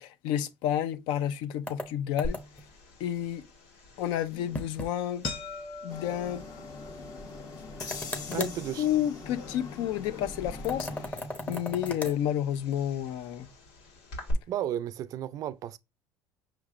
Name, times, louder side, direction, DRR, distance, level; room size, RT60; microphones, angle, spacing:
voice 1, 0.0-2.4 3.0-3.4 4.0-5.3 5.8-6.4 8.3-8.5 8.8-10.9 11.5-13.5, left 11 dB, 75° left, 0.5 m, -30 dB
sound 1, 1.7-2.7 4.5-4.9 5.2-5.4 5.7-5.8 7.8-8.6 10.6-12.2, left 1 dB, 15° left, 0.7 m, -37 dB
sound 2, 2.2-14.3, left 3 dB, 90° left, 2.1 m, -44 dB
sound 3, 5.9-11.1, left 4 dB, 45° left, 0.9 m, -42 dB
voice 2, 8.3-9.0 14.5-15.8, right 11 dB, 45° right, 0.4 m, -34 dB
5.7 x 3.0 x 2.4 m
cardioid pair, 130°, 8 cm